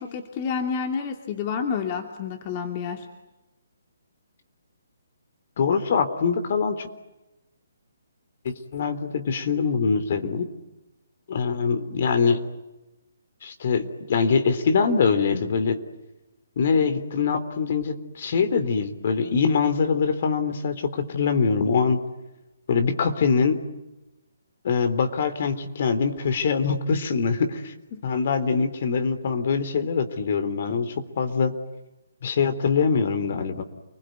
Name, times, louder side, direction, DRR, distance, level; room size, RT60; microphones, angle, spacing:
voice 1, 0.0-3.1 27.9-28.0, left 6 dB, 35° left, 4 dB, 2.7 m, -29 dB
voice 2, 5.6-6.9 8.4-10.5 11.3-12.4 13.4-15.8 16.6-22.0 22.7-23.6 24.6-27.7 28.0-31.5 32.2-33.6, left 5 dB, 50° left, 9 dB, 3.6 m, -23 dB
30.0 x 21.0 x 9.5 m, 1.0 s
hypercardioid pair, 145°, 0 cm